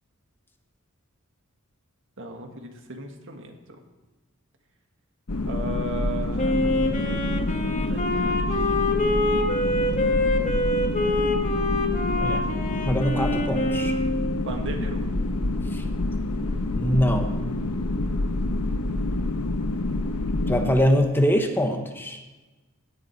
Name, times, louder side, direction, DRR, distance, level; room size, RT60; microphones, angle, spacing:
voice 1, 2.2-3.8 5.5-6.8 7.0-8.8 12.2-12.5 14.5-15.0, right 1 dB, 60° right, 4 dB, 1.9 m, -37 dB
sound 1, 5.3-20.8, left 2 dB, 80° left, 1.0 m, -27 dB
Wind instrument woodwind instrument, 6.4-14.5, left 1 dB, 35° left, 1.6 m, -25 dB
voice 2, 12.8-14.0 15.7-15.8 16.7-17.4 20.5-22.2, equal, 10° left, 4 dB, 1.1 m, -23 dB
17.0 x 10.5 x 4.7 m, 1.2 s
head